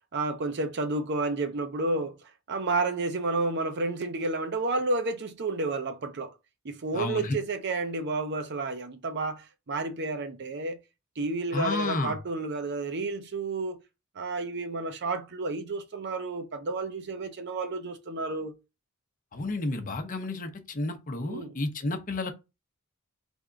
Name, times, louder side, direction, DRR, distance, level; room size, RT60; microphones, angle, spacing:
voice 1, 0.1-2.1 2.5-6.3 6.6-10.8 11.2-13.8 14.2-18.5 21.2-21.6, right 3 dB, 55° right, 0.6 m, -31 dB
voice 2, 6.9-7.4 11.5-12.1 19.3-22.3, left 2 dB, 40° left, 0.7 m, -31 dB
3.5 x 3.5 x 3.7 m
head